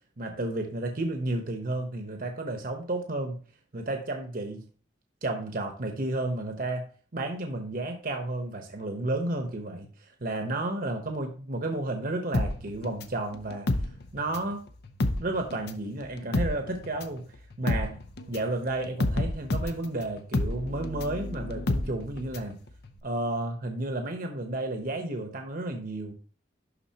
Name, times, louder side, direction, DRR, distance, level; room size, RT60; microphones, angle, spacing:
voice 1, 0.2-3.4 3.7-4.6 5.2-13.7 14.1-14.6 15.2-18.0 18.3-22.6 23.0-26.1, right 2 dB, 50° right, 4 dB, 1.0 m, -32 dB
sound 1, 12.3-14.6 14.8-22.5 22.8-22.9, left 2 dB, 60° left, 0.7 m, -29 dB
11.0 x 4.0 x 2.9 m, 0.40 s
head